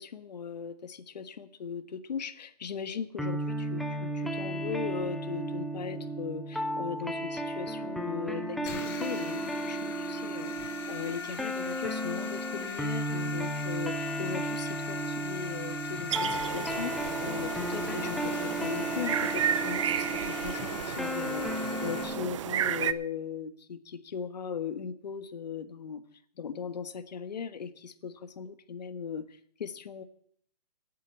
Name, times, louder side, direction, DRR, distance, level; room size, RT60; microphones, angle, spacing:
voice 1, 0.0-26.0 26.4-30.0, left 6 dB, 80° left, 11 dB, 1.4 m, -38 dB
sound 1, 3.2-22.3, right 1 dB, ahead, 0.6 m, -34 dB
sound 2, 8.7-22.0, left 4 dB, 35° left, 4.4 m, -40 dB
sound 3, 16.1-22.9, right 10 dB, 50° right, 0.6 m, -33 dB
11.5 x 8.5 x 8.4 m, 0.64 s
hypercardioid pair, 160°, 21 cm